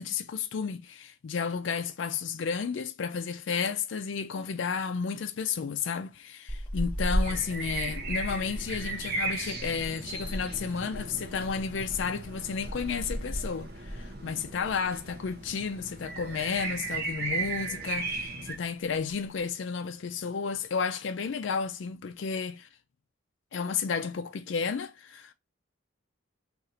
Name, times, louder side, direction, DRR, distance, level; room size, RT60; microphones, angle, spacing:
voice 1, 0.0-22.7 23.5-25.3, left 6 dB, 65° left, 0.4 m, -32 dB
sound 1, 6.5-15.0 15.3-15.5 15.9-16.7 17.0-17.4 17.7-17.8 17.9-18.4 18.9-19.4, equal, 10° left, 1.0 m, -36 dB
sound 2, 7.2-18.6, right 3 dB, 50° right, 0.7 m, -37 dB
2.6 x 2.5 x 4.1 m
head